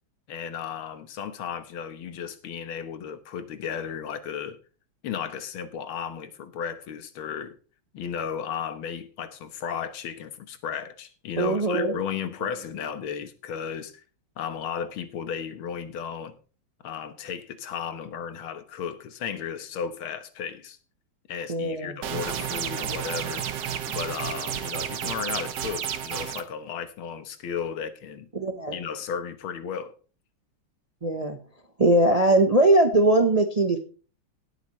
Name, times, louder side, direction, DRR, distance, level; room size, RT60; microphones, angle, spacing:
voice 1, 0.3-4.6 5.0-7.6 7.9-14.0 14.4-16.3 16.8-20.8 21.3-23.5 23.9-28.3 28.7-30.0, left 7 dB, 80° left, 2.0 m, -34 dB
voice 2, 11.4-12.0 21.5-21.9 28.3-28.8 31.0-31.4 31.8-33.8, right 2 dB, 30° right, 0.7 m, -20 dB
sound 1, 22.0-26.4, right 8 dB, 60° right, 1.5 m, -31 dB
17.5 x 8.4 x 3.2 m
omnidirectional pair, 2.2 m